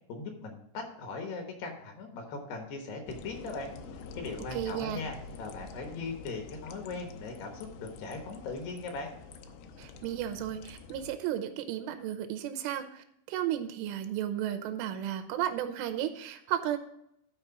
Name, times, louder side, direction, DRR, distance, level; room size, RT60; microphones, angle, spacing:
voice 1, 0.1-3.7 4.2-9.1, left 3 dB, 65° left, 3 dB, 2.9 m, -39 dB
sound 1, 3.1-11.1, left 4 dB, 85° left, 2.4 m, -47 dB
voice 2, 4.5-5.0 9.8-16.8, right 11 dB, 80° right, 8 dB, 3.1 m, -34 dB
12.5 x 4.8 x 4.7 m, 0.76 s
omnidirectional pair, 5.7 m